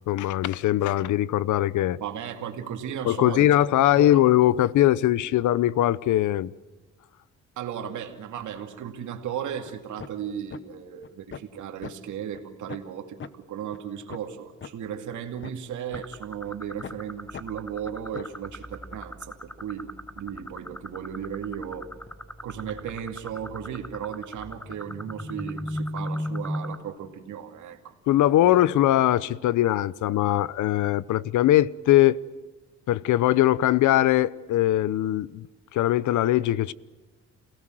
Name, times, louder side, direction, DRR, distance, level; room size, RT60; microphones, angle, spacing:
voice 1, 0.1-2.0 3.0-6.5 28.1-32.2 32.9-35.4 35.7-36.7, left 14 dB, 75° left, 0.8 m, -21 dB
voice 2, 2.0-4.2 7.6-21.9 22.4-27.9 28.4-28.6, right 9 dB, 75° right, 2.5 m, -36 dB
sound 1, 9.7-9.8 10.0-10.2 10.5-10.6 11.0-11.6 11.8-11.9 12.3-12.4 12.7-12.9 13.2-13.3 13.7-13.8 14.1-14.3 14.6-14.7 15.1-16.0 16.4-16.5 16.8-17.0 17.3-17.5 17.9-18.4, left 7 dB, 40° left, 1.1 m, -40 dB
sound 2, 15.9-26.8, equal, 5° left, 1.4 m, -37 dB
28.5 x 17.5 x 7.7 m
cardioid pair, 90°, 30 cm